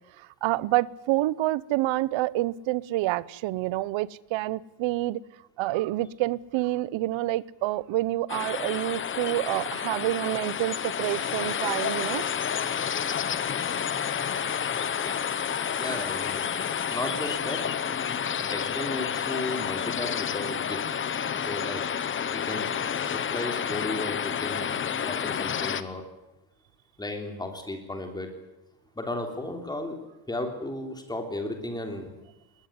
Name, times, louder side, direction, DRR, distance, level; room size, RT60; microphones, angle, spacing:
voice 1, 0.4-5.2 5.6-12.2, right 17 dB, 70° right, 0.9 m, -28 dB
sound 1, 8.3-25.8, left 8 dB, 25° left, 0.9 m, -30 dB
voice 2, 15.8-16.4 16.9-17.6 18.5-20.8 21.4-21.8 22.3-22.7 23.1-26.0 27.0-28.3 28.9-30.0 30.3-32.1, left 2 dB, 10° left, 3.3 m, -34 dB
21.0 x 19.0 x 9.7 m
cardioid pair, 180°, 47 cm